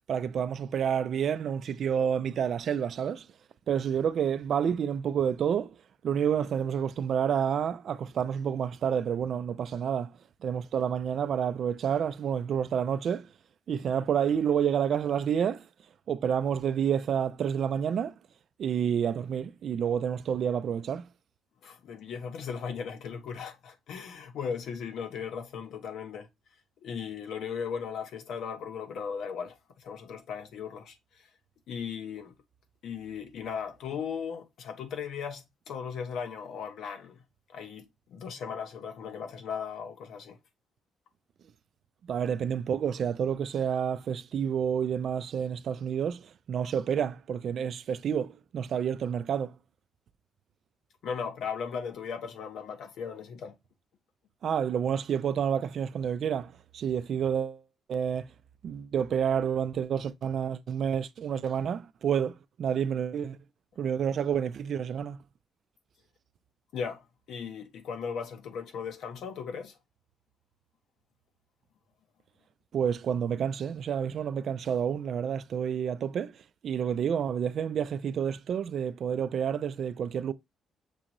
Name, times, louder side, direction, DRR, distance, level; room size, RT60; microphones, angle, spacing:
voice 1, 0.1-3.3 3.7-5.8 6.0-10.1 10.4-13.3 13.7-15.6 16.1-18.1 18.6-21.1 42.1-49.5 54.4-57.6 57.9-58.3 58.6-63.4 63.8-65.2 72.7-76.3 76.6-80.3, right 8 dB, 60° right, 0.3 m, -29 dB
voice 2, 21.6-26.3 26.8-31.3 31.7-32.3 32.8-37.2 37.5-40.4 51.0-53.5 66.7-69.7, left 6 dB, 75° left, 0.8 m, -37 dB
6.2 x 2.6 x 2.9 m
cardioid pair, 90°, 0 cm